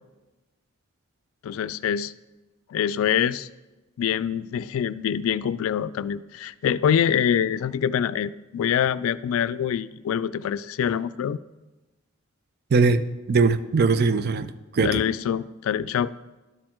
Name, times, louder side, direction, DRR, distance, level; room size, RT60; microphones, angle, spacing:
voice 1, 1.4-2.1 2.7-3.5 4.0-11.4 14.8-16.1, left 8 dB, 85° left, 16 dB, 0.3 m, -25 dB
voice 2, 12.7-13.0 13.3-15.0, right 4 dB, 50° right, 12 dB, 0.4 m, -21 dB
12.0 x 4.3 x 4.4 m, 1.1 s
head